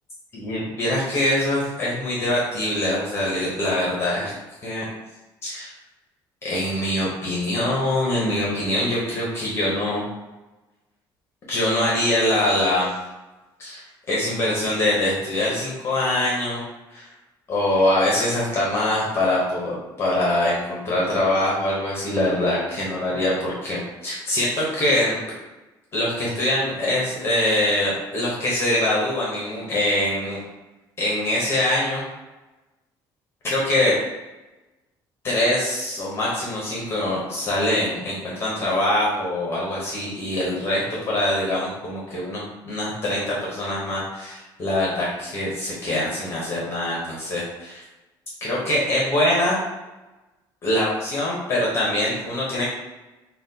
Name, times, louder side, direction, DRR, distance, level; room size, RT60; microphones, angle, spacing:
voice 1, 0.3-4.3 4.6-4.9 5.4-5.7 6.4-10.0 11.5-13.0 13.6-16.6 16.9-17.1 17.5-25.2 25.9-30.4 31.0-32.0 33.4-34.0 35.2-47.8 48.4-49.6 50.6-52.7, left 1 dB, 30° left, -5 dB, 0.8 m, -23 dB
5.7 x 2.2 x 2.7 m, 1.1 s
cardioid pair, 180°, 9 cm